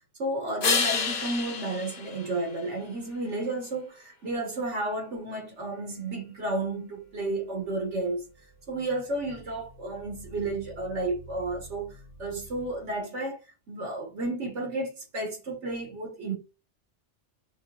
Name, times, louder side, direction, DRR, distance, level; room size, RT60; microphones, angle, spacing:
voice 1, 0.2-8.2 8.7-13.4 13.7-16.4, right 2 dB, 80° right, 1.5 m, -32 dB
sound 1, 0.6-3.2 8.9-12.9, left 5 dB, 55° left, 0.9 m, -33 dB
5.6 x 2.8 x 2.3 m
omnidirectional pair, 1.2 m